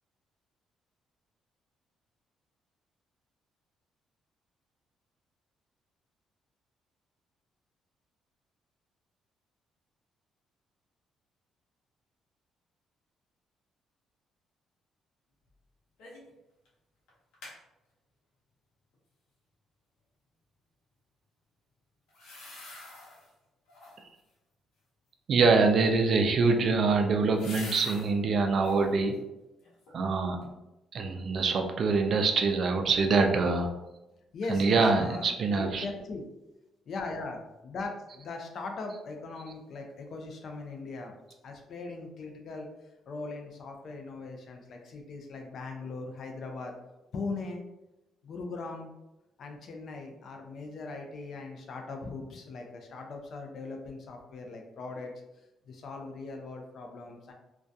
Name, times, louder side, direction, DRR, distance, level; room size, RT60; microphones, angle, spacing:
sound 1, 16.0-16.3 16.7-16.8 17.1-17.6 22.1-23.3 23.7-24.2 26.2-28.1 28.5-28.9 29.4-30.1 30.4-30.5, left 2 dB, 90° left, 0.7 m, -46 dB
voice 1, 25.3-29.2 29.9-30.4 30.9-33.7 34.5-35.9, right 4 dB, 50° right, 5 dB, 0.3 m, -25 dB
voice 2, 34.3-36.3 36.9-41.1 41.4-42.7 43.1-46.8 47.1-47.6 48.2-48.9 49.4-55.1 55.7-57.3, left 3 dB, 55° left, 3 dB, 0.4 m, -39 dB
2.2 x 2.2 x 2.6 m, 0.96 s
cardioid pair, 115°, 0 cm